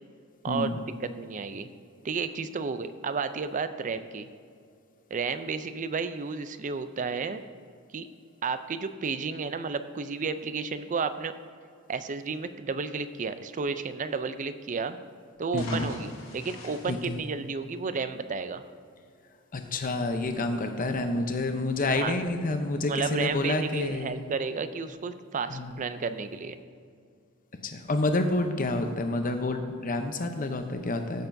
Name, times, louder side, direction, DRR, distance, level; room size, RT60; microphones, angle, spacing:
voice 1, 1.0-1.7 2.0-4.3 5.1-7.4 7.9-8.1 8.4-11.3 11.9-15.0 15.4-18.6 22.0-22.2 22.9-26.6, right 5 dB, 35° right, 11 dB, 0.4 m, -32 dB
sound 1, 15.4-18.0, left 1 dB, 65° left, 2.0 m, -41 dB
voice 2, 15.5-15.9 16.9-17.2 19.5-24.1 25.5-25.8 27.6-31.3, left 2 dB, 40° left, 6 dB, 0.7 m, -29 dB
15.5 x 6.7 x 2.7 m, 2.2 s
head